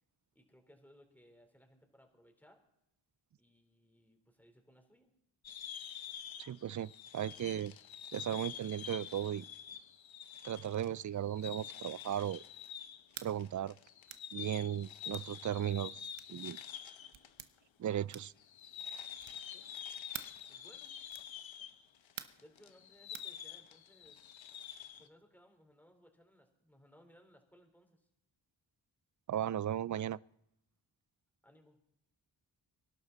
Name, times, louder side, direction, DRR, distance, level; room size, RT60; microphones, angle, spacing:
voice 1, 0.3-2.7 3.4-5.1 19.5-19.8 20.5-20.9 22.4-24.3 25.0-28.1 31.4-31.8, equal, 5° left, 4.1 m, -64 dB
sound 1, 5.4-17.3 17.6-17.7 18.4-25.1, left 9 dB, 75° left, 1.1 m, -47 dB
voice 2, 6.4-7.7 8.1-9.5 10.4-12.4 13.2-13.7 14.3-16.6 17.8-18.3 29.3-30.2, right 10 dB, 40° right, 0.4 m, -36 dB
sound 2, 13.1-13.3 14.1-14.3 15.1-15.3 16.1-16.4 17.1-17.5 18.1-18.4 19.2-19.5 20.1-20.4 21.1-21.3 22.2-22.5 23.1-23.3, right 10 dB, 80° right, 1.0 m, -48 dB
24.5 x 11.5 x 4.2 m
cardioid pair, 45°, 46 cm